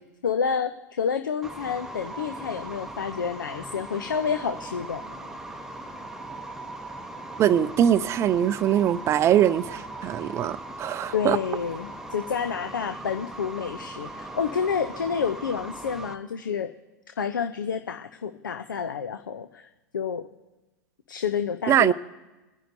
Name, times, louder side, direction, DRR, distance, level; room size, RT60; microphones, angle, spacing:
voice 1, 0.2-5.3 11.1-16.7 17.2-20.3 21.1-21.9, left 6 dB, 75° left, 0.6 m, -29 dB
sound 1, 1.4-16.1, right 2 dB, 5° right, 0.9 m, -39 dB
voice 2, 7.4-11.4 21.7-21.9, right 10 dB, 25° right, 0.5 m, -22 dB
25.5 x 10.0 x 2.7 m
figure-of-eight pair, 100°, 11 cm